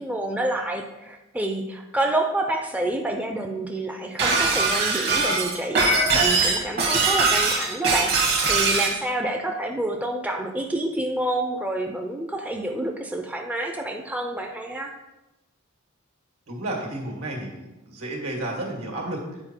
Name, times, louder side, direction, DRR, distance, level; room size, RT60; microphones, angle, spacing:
voice 1, 0.0-5.8 6.1-14.9, right 1 dB, 5° right, 3 dB, 0.4 m, -28 dB
Shatter, 4.2-9.0, right 3 dB, 50° right, 1.4 m, -21 dB
voice 2, 16.5-19.4, right 1 dB, 75° right, 0 dB, 1.9 m, -32 dB
8.8 x 4.5 x 4.4 m, 1.0 s
head